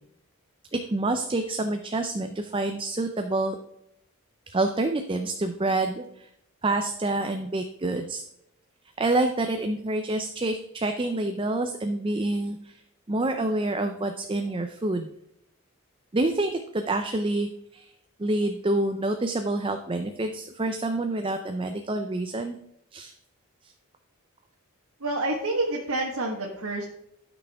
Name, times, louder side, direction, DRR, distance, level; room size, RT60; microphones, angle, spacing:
voice 1, 0.9-3.6 4.5-6.3 6.6-8.2 9.0-12.8 13.1-15.1 16.1-17.9 18.2-22.6 22.9-23.1, right 2 dB, 25° right, 6 dB, 0.5 m, -27 dB
voice 2, 25.0-26.9, right 2 dB, 90° right, -2 dB, 1.5 m, -28 dB
12.0 x 6.1 x 3.5 m, 0.79 s
head